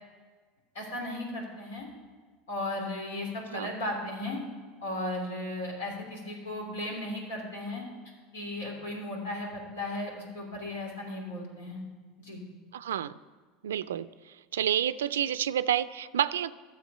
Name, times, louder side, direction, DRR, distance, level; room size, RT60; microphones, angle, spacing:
voice 1, 0.7-1.9 2.5-4.4 4.8-7.8 8.3-11.8 12.2-12.4, left 1 dB, 85° left, 0 dB, 3.1 m, -36 dB
voice 2, 12.7-13.1 13.6-14.1 14.5-16.5, right 10 dB, 90° right, 15 dB, 0.3 m, -29 dB
12.5 x 7.3 x 5.5 m, 1.5 s
hypercardioid pair, 95°, 0 cm